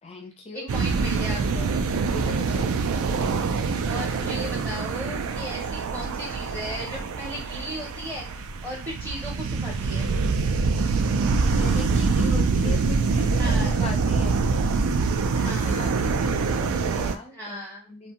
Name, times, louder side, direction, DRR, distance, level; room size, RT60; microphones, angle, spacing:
voice 1, 0.0-0.7 2.1-2.6 11.6-14.4 15.4-18.1, left 2 dB, 25° left, 1 dB, 0.5 m, -39 dB
voice 2, 0.5-1.7 3.8-10.1 13.3-13.8 15.3-16.0 17.3-17.9, equal, 15° right, -4 dB, 0.7 m, -36 dB
sound 1, 0.7-17.2, right 4 dB, 70° right, 0.3 m, -25 dB
2.5 x 2.3 x 2.8 m, 0.32 s
head